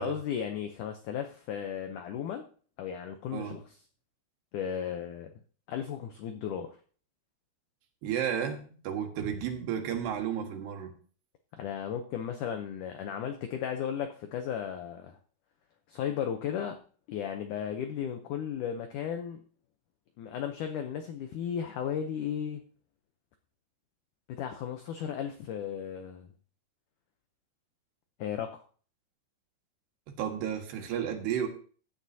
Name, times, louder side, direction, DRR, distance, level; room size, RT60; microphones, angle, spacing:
voice 1, 0.0-2.4 2.8-3.8 4.5-5.3 5.7-6.7 11.6-15.2 15.9-16.8 17.1-19.4 20.2-22.6 24.3-26.3 28.2-28.6, left 8 dB, 85° left, 6 dB, 1.7 m, -35 dB
voice 2, 8.0-10.9 30.1-31.5, right 9 dB, 80° right, 4 dB, 3.6 m, -33 dB
15.5 x 10.5 x 2.7 m, 0.43 s
omnidirectional pair, 4.7 m